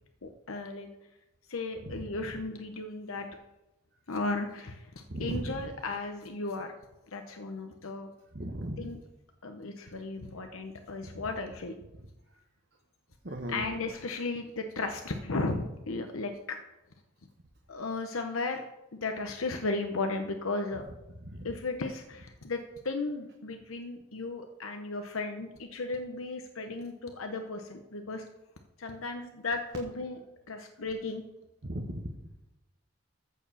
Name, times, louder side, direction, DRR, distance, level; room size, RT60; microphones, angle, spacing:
voice 1, 0.2-0.9 1.5-3.3 4.1-4.8 5.2-6.7 7.1-8.1 8.8-9.0 9.4-11.7 13.5-16.6 17.7-18.6 19.0-20.8 21.4-28.2 28.8-30.2 30.5-31.2, left 3 dB, 85° left, 5 dB, 0.9 m, -35 dB
voice 2, 5.1-5.6 8.3-8.9 13.2-13.7 20.7-20.9 21.3-21.4 31.6-32.0, equal, 55° right, 2 dB, 1.1 m, -37 dB
14.0 x 4.7 x 7.2 m, 0.96 s
head